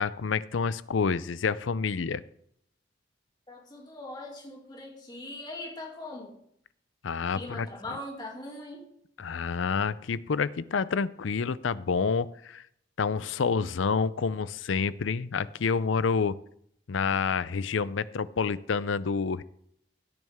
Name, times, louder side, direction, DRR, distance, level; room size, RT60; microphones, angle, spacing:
voice 1, 0.0-2.2 7.0-7.7 9.2-12.6 13.0-16.4 16.9-19.4, left 5 dB, 80° left, 17 dB, 0.5 m, -28 dB
voice 2, 3.5-6.4 7.3-8.8, left 1 dB, 20° left, -1 dB, 2.6 m, -41 dB
16.0 x 9.4 x 3.6 m, 0.70 s
head